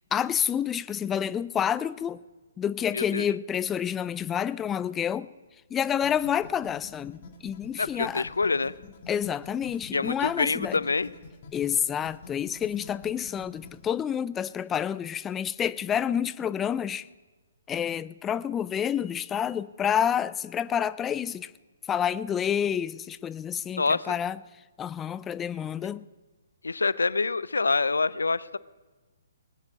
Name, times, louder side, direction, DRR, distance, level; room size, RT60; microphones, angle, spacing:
voice 1, 0.0-2.2 2.6-5.3 5.7-8.3 9.1-10.8 11.5-17.1 17.7-21.5 21.9-24.4 24.8-26.0, left 9 dB, 15° left, 0.3 m, -29 dB
voice 2, 2.9-3.3 7.8-8.7 9.9-11.1 23.8-24.1 26.6-28.6, left 4 dB, 80° left, 0.5 m, -26 dB
sound 1, 6.0-13.9, left 4 dB, 45° left, 2.0 m, -47 dB
19.5 x 9.6 x 5.1 m
figure-of-eight pair, 135°, 0 cm